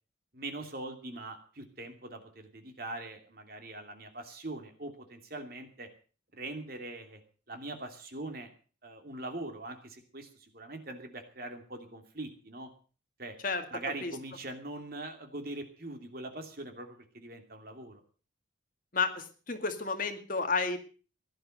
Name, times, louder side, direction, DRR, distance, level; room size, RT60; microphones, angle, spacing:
voice 1, 0.3-5.9 6.3-7.2 7.5-8.5 8.8-10.3 10.5-12.7 13.2-13.4 13.7-18.0, right 2 dB, 50° right, 5 dB, 2.8 m, -42 dB
voice 2, 18.9-20.8, left 4 dB, 45° left, 6 dB, 2.1 m, -31 dB
16.5 x 11.5 x 6.5 m, 0.40 s
head